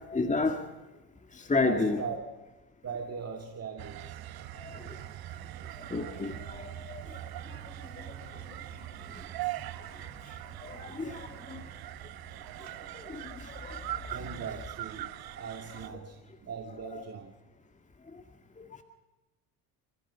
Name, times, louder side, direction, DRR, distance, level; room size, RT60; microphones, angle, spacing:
voice 1, 0.1-0.6 1.5-2.0 4.6-4.8 5.9-7.0 10.6-11.6 13.1-13.8 14.2-14.4 16.9-17.0 18.6-18.7, left 3 dB, 20° left, 6 dB, 2.0 m, -31 dB
voice 2, 1.6-2.2 2.8-4.2 14.1-15.1 15.3-16.2 16.4-17.3, right 6 dB, 35° right, 2 dB, 2.4 m, -39 dB
sound 1, 3.8-15.9, right 14 dB, 65° right, 1.1 m, -41 dB
29.5 x 15.0 x 5.8 m, 1.1 s
supercardioid pair, 95°, 41 cm